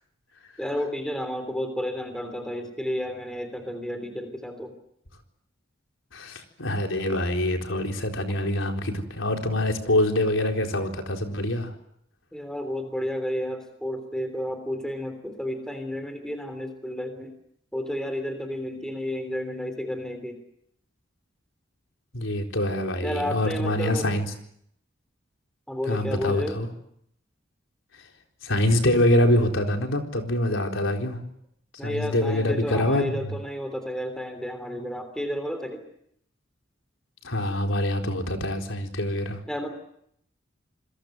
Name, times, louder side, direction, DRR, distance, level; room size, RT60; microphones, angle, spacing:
voice 1, 0.6-4.7 12.3-17.3 17.7-20.4 23.0-24.1 25.7-26.6 31.8-35.8 39.5-39.7, equal, 5° left, 7 dB, 3.3 m, -31 dB
voice 2, 6.1-11.7 22.1-24.2 25.9-26.7 28.4-31.2 31.8-33.4 37.2-39.4, left 1 dB, 85° left, 3 dB, 4.2 m, -25 dB
27.5 x 21.5 x 8.0 m, 0.73 s
head